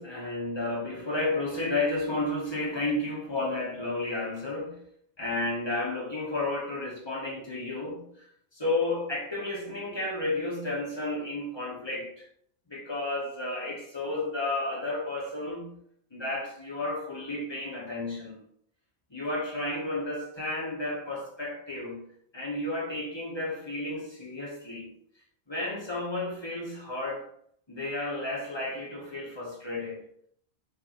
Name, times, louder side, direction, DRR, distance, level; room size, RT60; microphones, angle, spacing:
voice 1, 0.0-4.8 5.2-8.0 8.5-12.3 12.7-15.8 16.1-18.4 19.1-22.0 22.3-24.9 25.5-27.3 27.7-30.0, left 2 dB, 25° left, 1.0 m, -32 dB
5.3 x 2.6 x 2.9 m
omnidirectional pair, 1.1 m